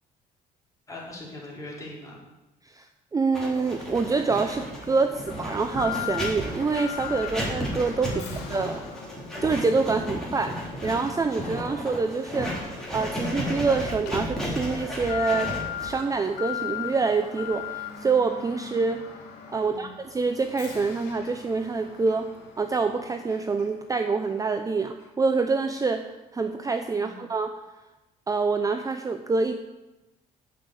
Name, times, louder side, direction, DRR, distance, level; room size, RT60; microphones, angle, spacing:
voice 1, 0.9-2.2 8.1-8.4 12.3-12.6 19.6-19.9 27.0-27.2, left 1 dB, 20° left, -5 dB, 4.1 m, -41 dB
voice 2, 3.1-8.2 8.5-8.8 9.4-10.6 10.8-12.5 12.9-15.6 15.8-19.1 19.5-22.3 22.6-26.1 26.3-27.5 28.3-29.6, right 4 dB, 20° right, 7 dB, 0.6 m, -26 dB
Writing, 3.3-18.1, equal, 5° left, 3.8 m, -34 dB
Alarm, 5.3-23.9 24.3-24.4 25.0-25.1, left 9 dB, 85° left, 2.5 m, -39 dB
8.2 x 6.3 x 8.1 m, 1.0 s
cardioid pair, 110°, 17 cm